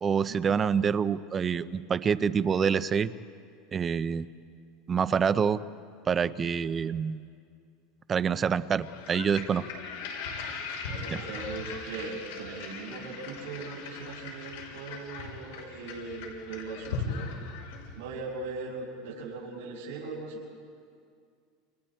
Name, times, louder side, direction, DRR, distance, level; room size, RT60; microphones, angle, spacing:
voice 1, 0.0-3.1 3.7-4.3 4.9-5.6 6.1-7.2 8.1-9.6 11.1-11.2, right 6 dB, 20° right, 13 dB, 0.5 m, -26 dB
sound 1, 8.8-18.1, left 4 dB, 75° left, 5.7 m, -39 dB
voice 2, 10.9-17.3 17.9-20.4, right 3 dB, 70° right, -8 dB, 6.9 m, -39 dB
29.5 x 29.5 x 4.4 m, 2.3 s
supercardioid pair, 175°, 0 cm